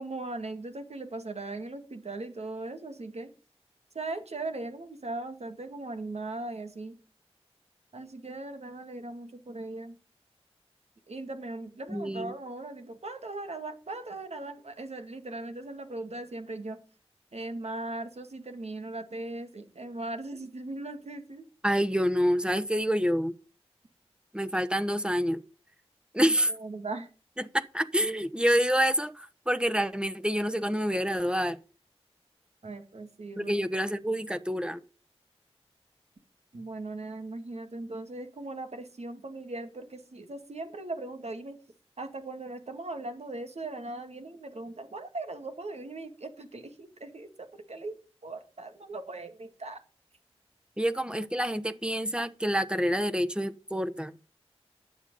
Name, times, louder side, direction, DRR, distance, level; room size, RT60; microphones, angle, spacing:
voice 1, 0.0-3.3 3.9-7.0 7.9-10.0 11.1-16.8 17.3-21.5 26.5-27.1 32.6-33.6 36.5-41.6 42.0-49.8, right 2 dB, 85° right, 2.0 m, -39 dB
voice 2, 11.9-12.3 21.6-23.3 24.3-25.4 26.1-26.5 27.5-31.6 33.4-34.8 50.8-54.2, equal, 10° right, 1.0 m, -27 dB
11.5 x 8.3 x 5.4 m
wide cardioid pair, 55°, 11 cm